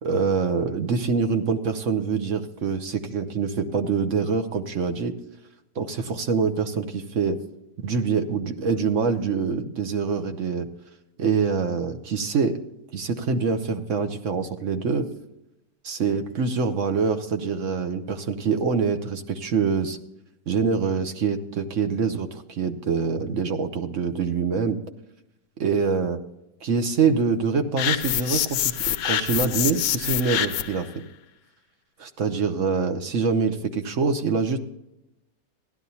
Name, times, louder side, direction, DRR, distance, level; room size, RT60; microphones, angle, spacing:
voice 1, 0.0-5.2 5.8-7.4 7.8-10.7 11.2-12.6 12.9-15.1 15.8-20.0 20.5-24.8 25.6-26.2 26.6-31.0 32.0-34.6, right 5 dB, 55° right, 7 dB, 1.0 m, -25 dB
sound 1, 27.8-30.8, left 11 dB, 70° left, 0.9 m, -26 dB
16.0 x 11.5 x 2.8 m, 0.88 s
omnidirectional pair, 1.9 m